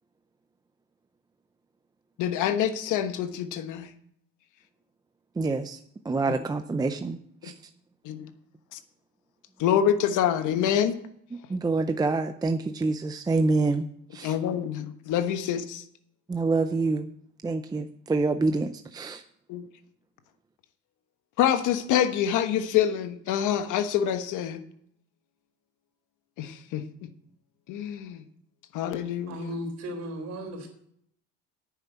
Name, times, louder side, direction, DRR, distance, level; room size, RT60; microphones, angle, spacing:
voice 1, 2.2-3.9 6.3-6.4 7.4-7.5 8.0-8.3 8.7-8.8 9.6-11.0 14.2-15.8 19.5-19.6 21.4-24.6 26.4-27.1 27.7-28.2 28.7-29.6, left 9 dB, 75° left, 9 dB, 1.2 m, -26 dB
voice 2, 5.4-5.8 6.0-7.5 11.5-13.9 14.1-14.3 16.3-17.1 17.4-19.2, right 3 dB, 15° right, 8 dB, 0.5 m, -26 dB
voice 3, 29.3-30.7, equal, 60° right, 3 dB, 4.0 m, -35 dB
9.6 x 7.2 x 8.3 m, 0.69 s
cardioid pair, 130°, 31 cm